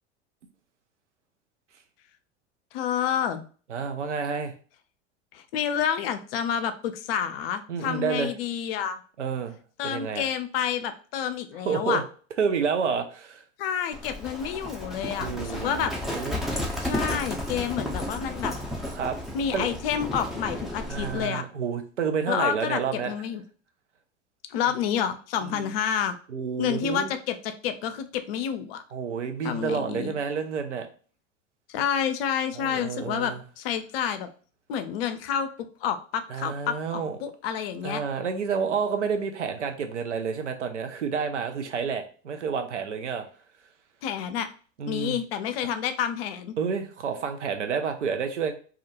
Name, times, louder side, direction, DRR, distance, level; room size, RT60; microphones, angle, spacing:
voice 1, 2.7-3.4 5.3-9.0 9.8-12.0 13.6-15.9 16.8-18.5 19.3-21.4 22.3-23.4 24.5-26.2 26.6-28.8 29.4-30.1 31.7-34.3 34.7-38.0 44.0-44.5 44.9-46.6, left 8 dB, 60° left, 10 dB, 0.5 m, -29 dB
voice 2, 3.7-4.5 7.7-8.3 9.2-9.6 9.8-10.3 11.6-12.0 12.4-13.4 15.2-16.4 18.9-19.2 19.5-19.7 20.9-23.1 25.4-25.7 26.3-27.1 28.9-30.9 32.5-33.4 36.3-37.2 37.8-43.3 44.8-45.2 46.6-48.5, right 6 dB, 85° right, 6 dB, 0.5 m, -29 dB
Livestock farm animals working animals, 13.9-21.3, left 1 dB, ahead, 0.4 m, -33 dB
2.4 x 2.1 x 2.8 m, 0.40 s
figure-of-eight pair, 75°, 34 cm